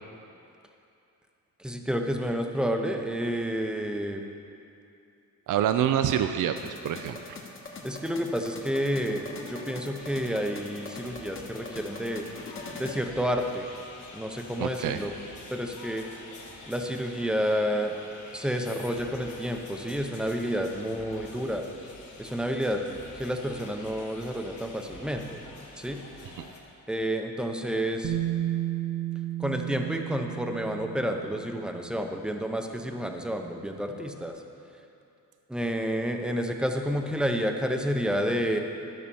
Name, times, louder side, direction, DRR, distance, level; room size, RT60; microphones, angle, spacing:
voice 1, 1.6-4.2 6.0-6.1 7.8-12.2 12.7-13.7 14.1-15.1 15.5-16.0 16.7-17.9 18.3-21.6 22.2-22.8 23.1-25.4 25.8-26.0 26.9-28.2 29.4-34.3 35.5-38.6, equal, ahead, 4 dB, 0.7 m, -30 dB
voice 2, 5.5-7.2 14.6-15.0 26.4-26.5, right 10 dB, 70° right, 8 dB, 0.5 m, -26 dB
sound 1, 6.6-13.0, left 3 dB, 40° left, 1.3 m, -42 dB
sound 2, 10.0-26.6, left 3 dB, 60° left, 1.7 m, -47 dB
Bass guitar, 28.0-32.0 33.1-33.2, right 13 dB, 40° right, 1.0 m, -33 dB
12.5 x 5.7 x 7.0 m, 2.6 s
wide cardioid pair, 140°, 33 cm